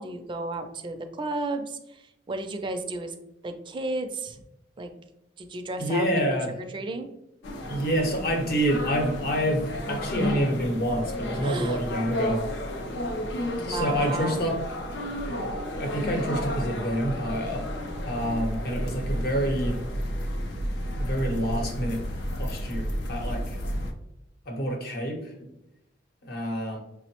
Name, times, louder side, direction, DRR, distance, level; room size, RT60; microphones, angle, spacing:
voice 1, 0.0-3.1 3.4-4.4 4.8-4.9 5.4-7.1 11.4-11.8 13.5-14.4, right 2 dB, 25° right, 6 dB, 0.4 m, -33 dB
voice 2, 5.8-6.5 7.7-12.5 13.6-14.6 15.8-17.7 18.0-19.8 21.0-22.0 22.4-23.6 24.5-25.5 26.2-26.8, equal, 60° left, 2 dB, 0.8 m, -27 dB
sound 1, 7.4-23.9, equal, 80° left, 0.5 m, -32 dB
5.9 x 2.0 x 2.9 m, 0.86 s
head